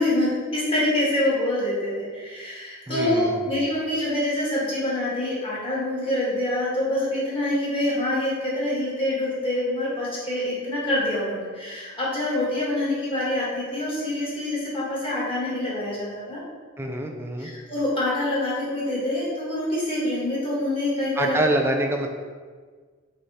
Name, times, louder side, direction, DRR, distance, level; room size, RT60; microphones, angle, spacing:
voice 1, 0.0-16.4 17.4-21.4, left 1 dB, 25° left, -7 dB, 1.4 m, -26 dB
voice 2, 2.9-3.6 16.8-17.5 21.2-22.1, right 1 dB, 10° right, 3 dB, 0.3 m, -25 dB
3.5 x 3.3 x 4.1 m, 1.5 s
head